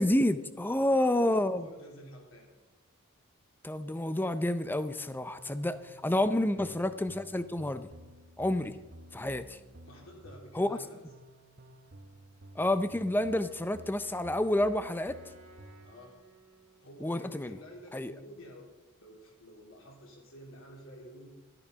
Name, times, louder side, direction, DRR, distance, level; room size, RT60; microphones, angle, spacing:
voice 1, 0.0-1.7 3.6-7.9 8.4-8.8 9.1-9.6 10.5-10.8 12.6-15.2 17.0-17.6 17.9-18.1, left 1 dB, 10° left, 12 dB, 0.5 m, -29 dB
voice 2, 0.6-2.5 6.5-6.7 9.8-11.0 15.8-16.2 16.8-18.7 19.0-21.3, equal, 65° left, -1 dB, 3.3 m, -50 dB
sound 1, 5.2-15.9, right 1 dB, 50° right, 0.9 m, -53 dB
Wind instrument woodwind instrument, 13.1-17.0, right 2 dB, 75° right, 1.7 m, -58 dB
13.0 x 9.9 x 5.1 m, 1.1 s
head